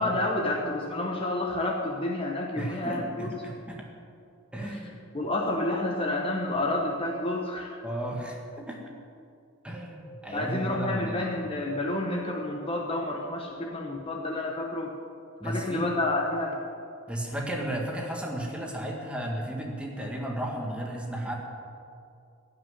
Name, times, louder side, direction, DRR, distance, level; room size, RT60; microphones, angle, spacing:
voice 1, 0.0-3.3 4.6-4.8 5.1-7.8 10.3-14.9 15.4-16.6, left 2 dB, 25° left, 0 dB, 1.1 m, -29 dB
voice 2, 2.6-3.9 4.5-5.0 7.8-8.8 9.6-11.5 15.4-15.9 17.1-21.3, right 1 dB, 5° right, -1 dB, 1.7 m, -34 dB
15.5 x 6.0 x 9.8 m, 2.4 s
head